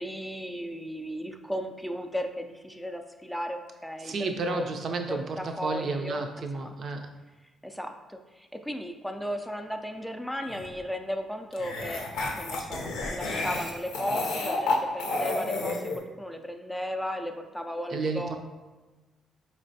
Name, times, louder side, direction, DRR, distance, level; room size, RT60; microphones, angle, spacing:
voice 1, 0.0-4.7 5.1-6.7 7.6-12.0 12.3-15.9 16.2-18.4, equal, 5° left, 5 dB, 0.3 m, -35 dB
voice 2, 4.0-7.1 17.9-18.4, right 3 dB, 55° right, 5 dB, 0.5 m, -31 dB
sound 1, 10.5-10.7 11.5-16.0, left 2 dB, 90° left, 0.6 m, -30 dB
4.4 x 3.2 x 2.7 m, 1.2 s
cardioid pair, 90°, 0 cm